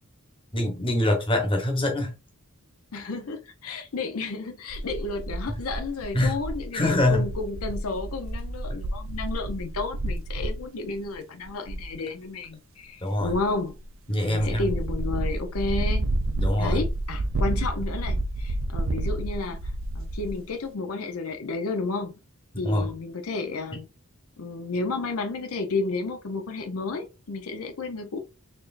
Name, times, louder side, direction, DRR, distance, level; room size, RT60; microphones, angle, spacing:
voice 1, 0.5-2.1 6.1-6.4 6.7-7.3 13.0-13.4 14.1-14.7 16.4-16.8 22.6-22.9, left 1 dB, 25° left, 1.1 m, -24 dB
voice 2, 2.9-13.7 14.2-16.1 16.6-19.6 19.9-22.1 22.6-23.9 24.4-28.2, left 3 dB, 80° left, 0.6 m, -32 dB
sound 1, 4.7-10.6 10.9-11.1 11.4-11.9 13.2-13.9 14.3-20.5, right 1 dB, 60° right, 0.5 m, -30 dB
4.2 x 3.2 x 2.5 m
head